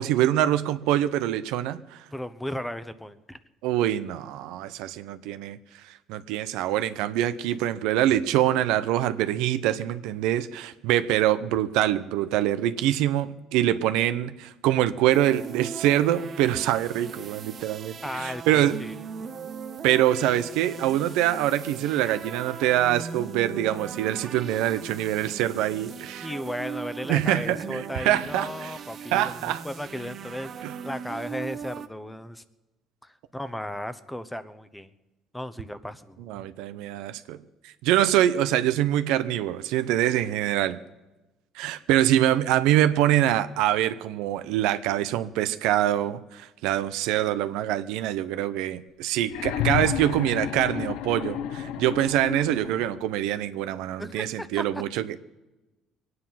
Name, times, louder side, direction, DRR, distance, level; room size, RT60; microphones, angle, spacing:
voice 1, 0.0-1.8 3.6-5.6 6.1-18.8 19.8-26.3 27.1-28.7 29.1-29.6 30.6-30.8 36.3-37.4 37.8-40.8 41.6-55.2, right 12 dB, 85° right, 12 dB, 0.7 m, -24 dB
voice 2, 2.1-3.4 18.0-19.0 26.2-32.4 33.0-34.9 35.3-36.3 54.0-54.6, left 1 dB, 5° left, 13 dB, 0.9 m, -35 dB
sound 1, 15.1-31.9, right 7 dB, 45° right, 0.8 m, -39 dB
sound 2, 49.2-53.1 54.3-54.4, left 10 dB, 80° left, 0.8 m, -31 dB
22.0 x 9.6 x 5.7 m, 1.1 s
supercardioid pair, 90°, 0 cm